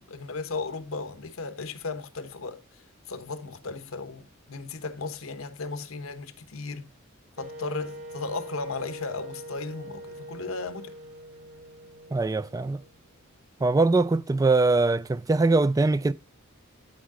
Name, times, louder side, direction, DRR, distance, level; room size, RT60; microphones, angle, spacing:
voice 1, 0.0-6.9 7.4-11.0, left 3 dB, 80° left, 1.1 m, -36 dB
Wind instrument woodwind instrument, 7.4-13.2, right 1 dB, 65° right, 3.2 m, -43 dB
voice 2, 12.1-12.8 13.6-16.1, right 3 dB, 15° right, 0.3 m, -22 dB
11.5 x 4.9 x 3.7 m
head